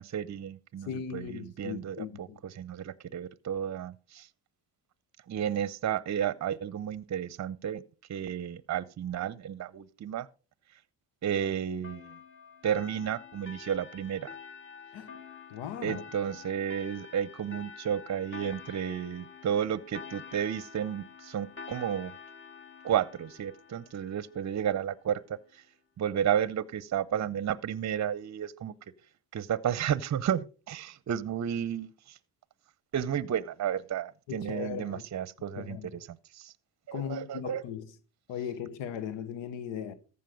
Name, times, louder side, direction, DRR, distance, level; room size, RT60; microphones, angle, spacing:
voice 1, 0.0-4.3 5.3-7.8 8.1-10.3 11.2-12.2 12.6-14.3 15.8-22.1 22.8-25.2 25.5-25.6 26.0-28.7 29.3-32.2 32.9-36.1 36.3-36.5 36.9-37.6, right 9 dB, 40° right, 0.7 m, -32 dB
voice 2, 0.9-2.4 14.9-15.1 15.5-16.0 34.3-35.0 35.6-36.0 36.9-37.9 38.3-39.9, left 8 dB, 80° left, 1.1 m, -38 dB
sound 1, 11.8-24.9, left 6 dB, 30° left, 2.2 m, -48 dB
14.5 x 5.5 x 5.2 m
supercardioid pair, 70°, 43 cm